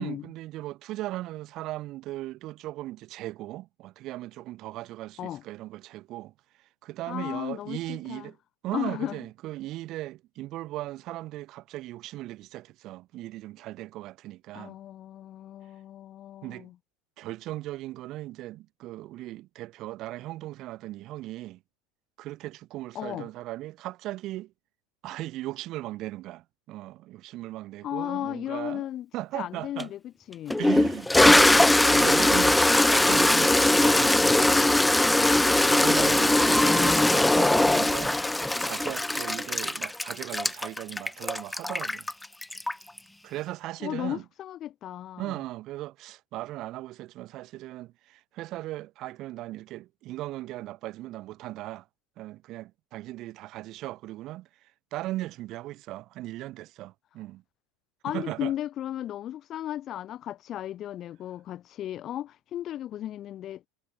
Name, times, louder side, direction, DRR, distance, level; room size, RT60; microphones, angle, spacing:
voice 1, 0.0-6.3 6.8-8.3 8.6-14.7 16.4-16.7 17.2-21.6 22.2-24.5 25.0-28.9 29.1-29.9 30.6-32.6 33.1-34.9 35.5-38.2 38.6-42.1 43.2-44.2 45.2-51.8 52.2-54.5 54.9-57.4 58.1-58.5, right 16 dB, 50° right, 3.2 m, -37 dB
voice 2, 7.1-8.3 8.7-9.2 14.5-16.7 22.9-23.3 27.8-29.1 29.3-30.6 36.6-37.0 43.8-45.4 58.0-63.7, left 12 dB, 45° left, 2.8 m, -35 dB
Toilet flush, 29.8-29.9 30.5-43.0, left 1 dB, 5° left, 2.1 m, -21 dB
hypercardioid pair, 85°, 0 cm